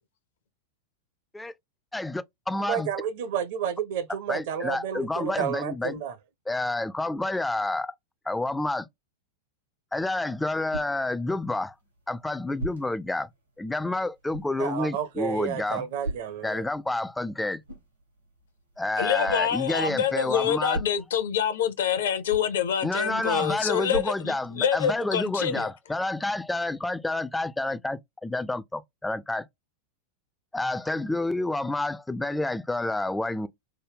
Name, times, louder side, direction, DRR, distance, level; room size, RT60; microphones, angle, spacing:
voice 1, 1.9-2.9 4.3-6.0 6.5-7.9 8.3-8.9 9.9-11.7 12.1-13.3 13.6-15.9 16.4-17.6 18.8-20.8 22.8-29.5 30.5-33.5, left 2 dB, 5° left, 0.3 m, -29 dB
voice 2, 2.6-6.1 14.6-16.6, right 8 dB, 50° right, 0.6 m, -31 dB
sound 1, 10.0-25.0, right 2 dB, 85° right, 1.2 m, -43 dB
voice 3, 19.0-25.7, left 8 dB, 60° left, 0.6 m, -26 dB
3.1 x 2.2 x 3.4 m
figure-of-eight pair, 90°, 0 cm